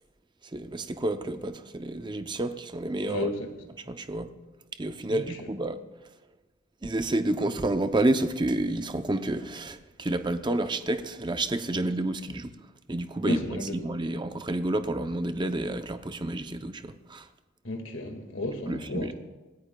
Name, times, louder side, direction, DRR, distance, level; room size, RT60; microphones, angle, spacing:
voice 1, 0.5-3.3 3.8-4.3 4.8-5.8 6.8-12.5 12.9-17.3 18.7-19.1, right 1 dB, 20° right, 9 dB, 0.6 m, -29 dB
voice 2, 13.2-13.8 17.6-19.1, left 2 dB, 70° left, 4 dB, 1.9 m, -32 dB
26.0 x 16.0 x 2.3 m, 1.1 s
head